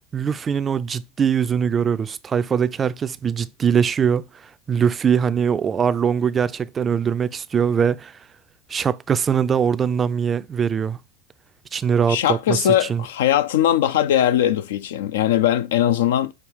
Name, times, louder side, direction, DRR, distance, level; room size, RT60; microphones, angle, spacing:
voice 1, 0.1-4.3 4.7-8.1 8.7-11.0 11.7-13.0, right 7 dB, 25° right, 0.3 m, -22 dB
voice 2, 12.1-16.3, left 11 dB, 75° left, 0.4 m, -20 dB
6.1 x 2.3 x 3.5 m
hypercardioid pair, 100°, 0 cm